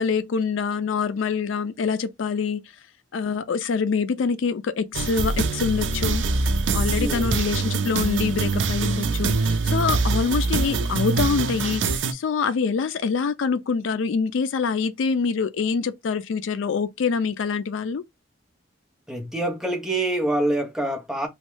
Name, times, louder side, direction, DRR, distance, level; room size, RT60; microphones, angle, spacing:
voice 1, 0.0-2.6 3.1-6.2 6.7-18.0, left 5 dB, 80° left, 0.4 m, -25 dB
sound 1, 4.9-12.1, right 4 dB, 70° right, 0.5 m, -24 dB
voice 2, 7.0-7.4 19.1-21.3, right 1 dB, 5° right, 0.7 m, -26 dB
3.1 x 2.2 x 3.1 m
head